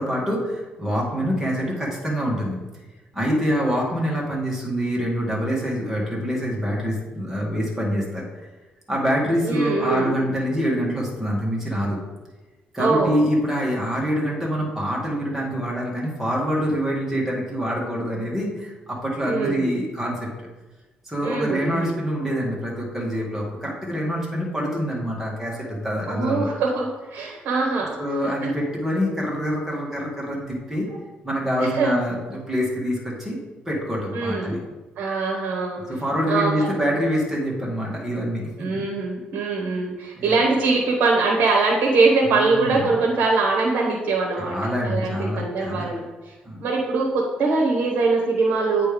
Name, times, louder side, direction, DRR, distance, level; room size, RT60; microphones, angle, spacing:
voice 1, 0.0-2.6 3.1-8.3 8.9-12.0 12.7-20.5 21.1-26.5 28.0-30.9 31.2-33.4 33.7-34.6 35.9-38.8 40.2-40.4 42.2-42.9 44.4-45.9 46.4-46.7, equal, 10° right, -4 dB, 1.9 m, -25 dB
voice 2, 9.4-10.1 12.8-13.2 19.2-19.7 21.2-22.0 26.1-28.0 28.2-28.5 30.9-31.0 31.6-31.9 34.1-34.6 35.0-35.8 36.3-36.7 38.6-44.6 44.8-46.3 46.6-48.9, right 3 dB, 60° right, -2 dB, 1.1 m, -22 dB
8.4 x 3.3 x 5.2 m, 1.2 s
cardioid pair, 125°, 3 cm